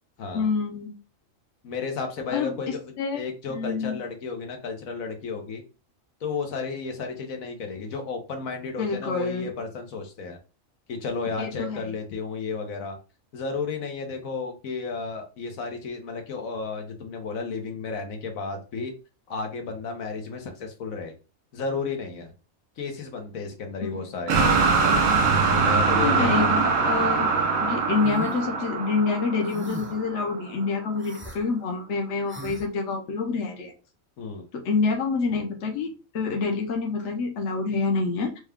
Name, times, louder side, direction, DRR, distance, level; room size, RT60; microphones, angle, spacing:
voice 1, 0.3-0.9 2.3-4.0 8.8-9.5 11.4-11.8 23.8-24.0 25.8-27.3 27.6-33.7 34.5-38.4, left 4 dB, 60° left, 2 dB, 1.0 m, -27 dB
voice 2, 1.6-5.6 6.2-10.4 10.9-13.0 13.3-18.9 19.3-21.1 21.5-22.3 22.8-24.4 25.5-26.5 34.2-34.4, left 4 dB, 80° left, 4 dB, 1.3 m, -33 dB
sound 1, 24.3-30.3, right 4 dB, 85° right, 1.2 m, -23 dB
sound 2, 28.0-28.4 29.5-30.0 31.0-31.4 32.3-32.6, right 2 dB, 20° right, 0.3 m, -37 dB
4.7 x 2.2 x 3.5 m, 0.33 s
omnidirectional pair, 1.4 m